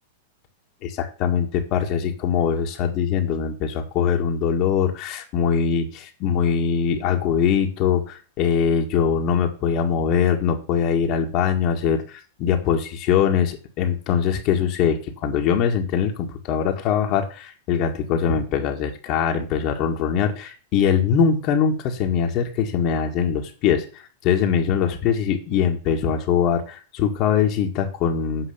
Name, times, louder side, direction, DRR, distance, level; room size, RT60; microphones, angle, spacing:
voice 1, 0.8-28.5, left 7 dB, 45° left, 3 dB, 1.9 m, -22 dB
8.3 x 5.5 x 7.1 m, 0.37 s
hypercardioid pair, 100°, 0 cm